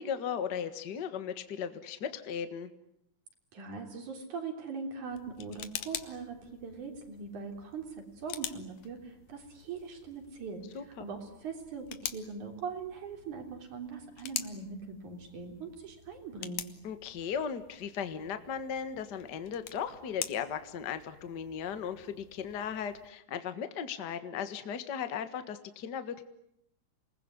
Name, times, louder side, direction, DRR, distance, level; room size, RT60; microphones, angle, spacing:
voice 1, 0.0-2.7 10.7-11.1 16.8-26.2, left 7 dB, 40° left, 10 dB, 1.7 m, -37 dB
voice 2, 3.5-10.6 11.0-16.7, right 5 dB, 70° right, 4 dB, 4.9 m, -41 dB
sound 1, 5.1-23.1, left 11 dB, 75° left, 2.6 m, -46 dB
27.5 x 19.5 x 9.8 m, 0.77 s
omnidirectional pair, 3.6 m